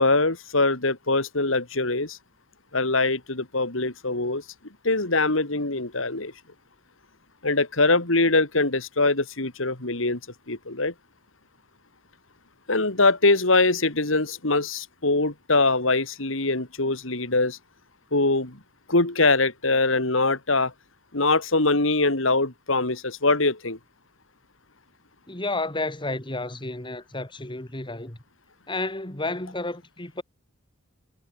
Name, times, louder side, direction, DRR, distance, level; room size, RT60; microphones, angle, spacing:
voice 1, 0.0-2.2 2.7-4.4 4.8-6.3 7.4-10.2 10.5-10.9 12.7-17.6 18.1-18.6 18.9-20.7 21.1-23.8, left 3 dB, 70° left, 3.2 m, -23 dB
voice 2, 25.3-28.2 28.7-30.2, left 2 dB, 25° left, 2.8 m, -31 dB
head